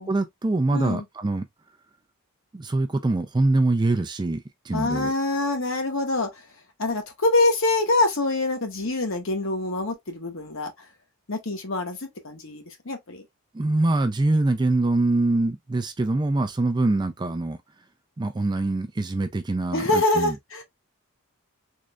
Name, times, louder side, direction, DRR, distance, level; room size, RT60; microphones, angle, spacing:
voice 1, 0.0-1.5 2.5-5.1 13.5-17.6 18.2-20.4, right 2 dB, 20° right, 0.3 m, -24 dB
voice 2, 0.7-1.0 4.7-6.3 6.8-10.7 11.3-13.2 19.7-20.6, left 2 dB, 60° left, 1.1 m, -25 dB
3.7 x 3.2 x 2.3 m
head